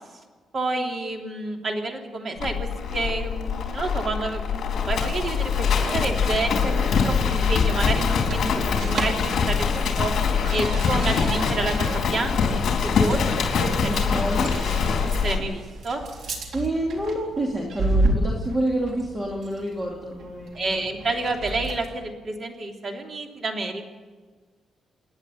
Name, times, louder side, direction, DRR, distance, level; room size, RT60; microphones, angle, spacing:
voice 1, 0.5-10.1 10.5-14.3 15.0-16.0 20.5-23.8, right 2 dB, 40° right, 2 dB, 3.2 m, -29 dB
Livestock farm animals working animals, 2.4-15.4, left 6 dB, 60° left, 4.2 m, -24 dB
sound 1, 7.0-22.0, right 2 dB, 65° right, 3.8 m, -32 dB
voice 2, 13.8-14.5 16.5-20.8, right 1 dB, 20° right, -1 dB, 2.6 m, -28 dB
29.0 x 10.5 x 9.0 m, 1.4 s
cardioid pair, 145°, 0 cm